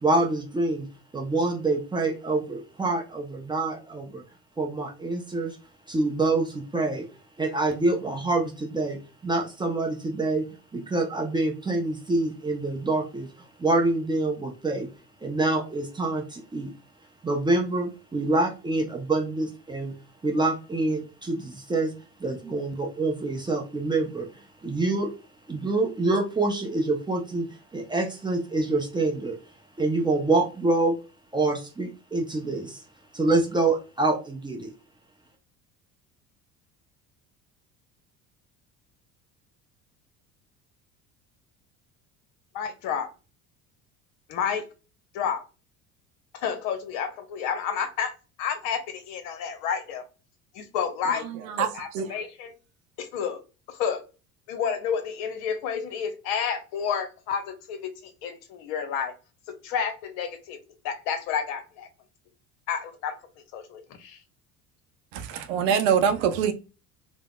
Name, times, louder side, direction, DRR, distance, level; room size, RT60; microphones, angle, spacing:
voice 1, 0.0-0.9 1.1-4.2 4.6-5.6 5.9-7.1 7.4-10.5 10.7-13.3 13.6-14.9 15.2-16.7 17.2-20.0 20.2-21.9 22.2-25.1 25.5-29.4 29.8-31.0 31.3-32.8 33.1-34.7, right 2 dB, 10° right, 2 dB, 0.5 m, -26 dB
voice 2, 42.5-43.1 44.3-44.6 45.1-45.4 46.3-48.1 48.4-50.1 50.5-51.3 51.6-52.5 53.0-53.4 53.7-54.0 54.5-59.1 59.6-60.6 60.8-61.9 62.7-63.1 63.5-64.2, left 7 dB, 55° left, 8 dB, 0.8 m, -30 dB
voice 3, 51.1-52.2 65.1-66.5, right 7 dB, 60° right, 8 dB, 0.6 m, -25 dB
3.3 x 2.1 x 2.2 m, 0.32 s
figure-of-eight pair, 65°, 46 cm